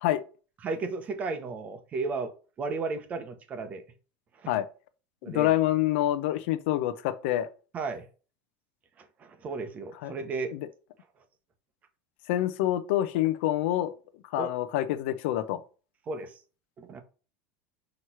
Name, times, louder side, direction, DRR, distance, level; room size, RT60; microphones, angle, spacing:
voice 1, 0.6-2.3 2.6-3.8 4.4-4.5 5.2-5.6 7.7-8.1 9.0-10.5 14.4-14.5 16.1-16.3 16.8-17.0, right 3 dB, 20° right, 0.9 m, -34 dB
voice 2, 5.2-7.5 10.0-10.2 10.5-10.7 12.3-13.9 14.3-15.6, left 13 dB, 65° left, 0.8 m, -27 dB
6.3 x 3.2 x 5.6 m
supercardioid pair, 175°, 7 cm